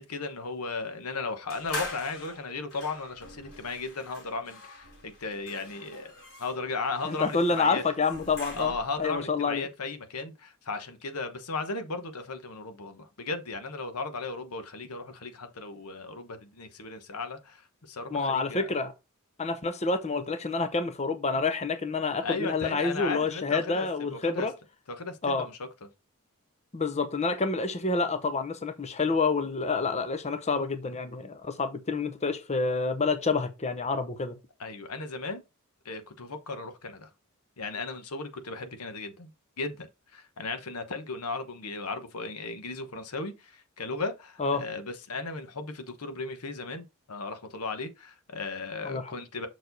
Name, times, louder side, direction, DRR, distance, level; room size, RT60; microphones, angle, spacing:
voice 1, 0.0-6.1 6.4-7.8 8.5-18.7 22.2-24.5 24.9-25.9 34.6-35.4 35.8-37.1 37.6-39.3 39.6-49.5, left 3 dB, 85° left, 1.1 m, -36 dB
sound 1, 1.5-9.0, left 2 dB, 65° left, 4.8 m, -43 dB
voice 2, 7.1-8.7 9.0-9.7 18.1-18.9 19.4-24.5 25.2-25.5 26.7-34.4 44.4-44.6 48.8-49.0, left 4 dB, 30° left, 0.7 m, -28 dB
6.3 x 4.6 x 4.0 m
head